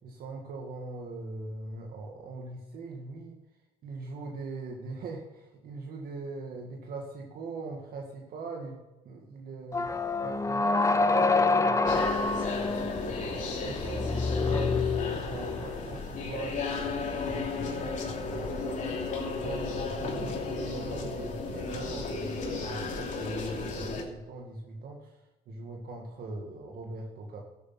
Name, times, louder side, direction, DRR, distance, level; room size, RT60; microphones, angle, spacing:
voice 1, 0.0-3.4 3.8-8.8 9.0-9.9 10.2-11.8 13.6-17.9 18.2-27.4, right 3 dB, 60° right, 0 dB, 2.0 m, -41 dB
sound 1, 9.7-15.7, left 3 dB, 20° left, 0.9 m, -27 dB
sound 2, 11.9-24.0, left 3 dB, 45° left, 2.9 m, -34 dB
voice 2, 12.4-14.2, right 2 dB, 25° right, 0 dB, 5.2 m, -48 dB
13.5 x 8.5 x 6.0 m, 1.0 s
cardioid pair, 110°, 17 cm